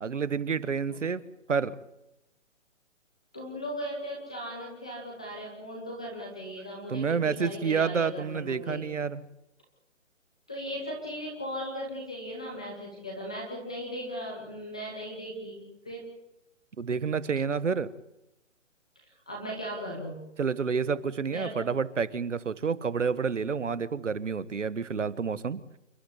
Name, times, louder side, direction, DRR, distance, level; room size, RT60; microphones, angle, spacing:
voice 1, 0.0-1.2 1.5-1.7 6.9-9.2 16.8-17.9 20.4-25.6, right 6 dB, 70° right, 16 dB, 1.6 m, -29 dB
voice 2, 3.3-8.9 10.5-16.1 19.3-20.2 21.3-21.6, equal, 5° left, -2 dB, 0.9 m, -37 dB
28.5 x 12.5 x 9.8 m, 0.89 s
hypercardioid pair, 180°, 38 cm